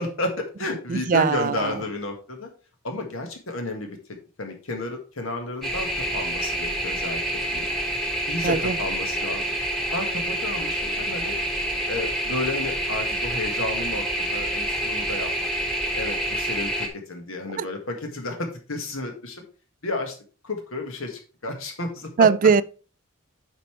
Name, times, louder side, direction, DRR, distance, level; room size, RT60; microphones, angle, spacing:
voice 1, 0.0-2.5 2.8-4.0 4.4-7.7 8.3-9.6 9.9-11.3 11.9-19.4 19.8-20.2 20.4-22.3, left 2 dB, 75° left, 1.7 m, -32 dB
voice 2, 0.9-1.6 8.4-8.7 17.6-17.7 22.2-22.6, right 6 dB, 40° right, 0.3 m, -19 dB
sound 1, 5.6-16.9, right 1 dB, ahead, 1.4 m, -27 dB
8.2 x 5.4 x 3.2 m
head